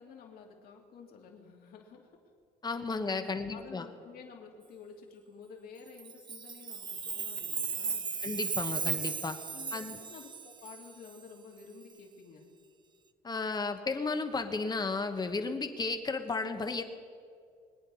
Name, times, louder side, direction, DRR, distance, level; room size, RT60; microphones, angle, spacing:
voice 1, 0.0-2.1 2.6-2.8 3.2-8.1 9.5-12.6, left 5 dB, 65° left, 1 dB, 2.8 m, -51 dB
voice 2, 2.6-3.9 8.2-9.4 9.7-10.0 13.2-16.8, left 3 dB, 25° left, 8 dB, 1.2 m, -33 dB
Chime, 6.0-11.1, right 6 dB, 25° right, 0.6 m, -36 dB
24.0 x 9.0 x 5.6 m, 2.3 s
cardioid pair, 110°, 17 cm